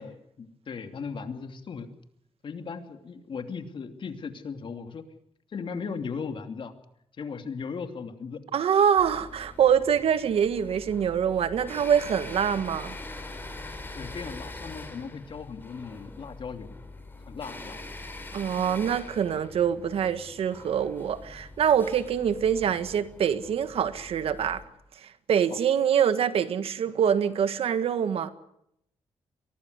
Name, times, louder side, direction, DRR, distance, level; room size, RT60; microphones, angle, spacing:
voice 1, 0.0-1.9 2.4-5.0 5.5-6.7 7.2-8.4 13.9-16.9 17.3-17.8 25.5-25.6, left 5 dB, 55° left, 2.8 m, -37 dB
voice 2, 8.5-12.9 18.3-24.6 25.0-28.3, right 8 dB, 75° right, 1.6 m, -25 dB
sound 1, 9.0-24.6, left 2 dB, 20° left, 5.1 m, -43 dB
23.5 x 18.5 x 8.1 m
cardioid pair, 75°, 10 cm